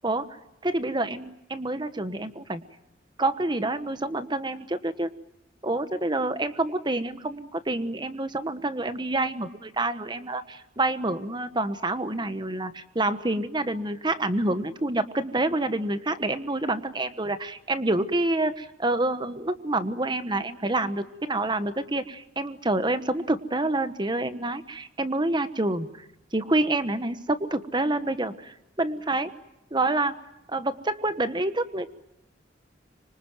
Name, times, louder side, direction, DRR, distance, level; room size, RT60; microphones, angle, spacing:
voice 1, 0.6-2.6 3.2-5.1 5.6-25.9 26.3-29.3 29.7-30.1 30.5-31.9, right 2 dB, 25° right, 11 dB, 1.2 m, -27 dB
26.0 x 25.0 x 9.3 m, 0.84 s
head